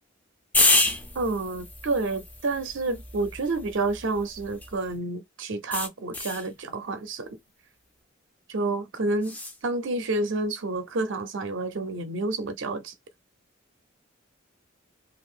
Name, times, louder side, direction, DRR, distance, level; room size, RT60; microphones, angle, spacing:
sound 1, 0.5-4.9 5.7-6.5 9.2-9.6, left 2 dB, 10° left, 0.4 m, -28 dB
voice 1, 1.1-7.4 8.5-9.4 9.6-12.9, right 2 dB, 60° right, 0.5 m, -29 dB
2.6 x 2.4 x 3.6 m
head